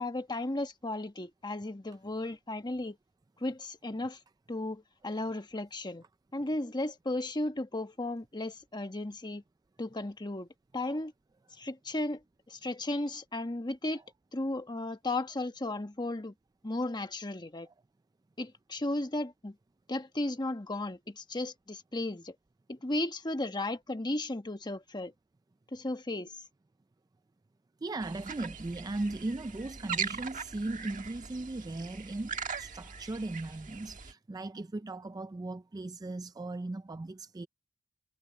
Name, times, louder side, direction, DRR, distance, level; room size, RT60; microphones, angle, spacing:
voice 1, 0.0-3.0 3.4-4.2 4.5-6.0 6.3-9.4 9.8-10.5 10.7-11.1 11.5-12.2 12.5-14.0 14.3-16.3 16.6-17.7 18.4-19.6 19.9-22.3 22.7-25.1 25.7-26.4, left 2 dB, 20° left, 1.2 m, -35 dB
voice 2, 27.8-37.5, right 2 dB, 20° right, 0.3 m, -38 dB
sound 1, 28.0-34.1, right 6 dB, 40° right, 1.6 m, -40 dB
head